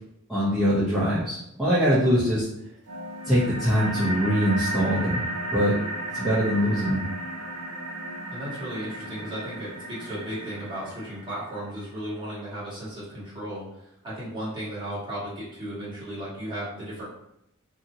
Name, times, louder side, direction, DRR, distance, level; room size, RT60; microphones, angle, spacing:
voice 1, 0.3-2.4 3.2-5.2 5.5-5.8 6.1-7.1, equal, ahead, -12 dB, 0.6 m, -23 dB
sound 1, 2.9-11.9, right 1 dB, 85° right, 0.6 m, -34 dB
voice 2, 8.3-17.0, equal, 20° right, -10 dB, 1.4 m, -35 dB
2.7 x 2.6 x 2.6 m, 0.81 s
head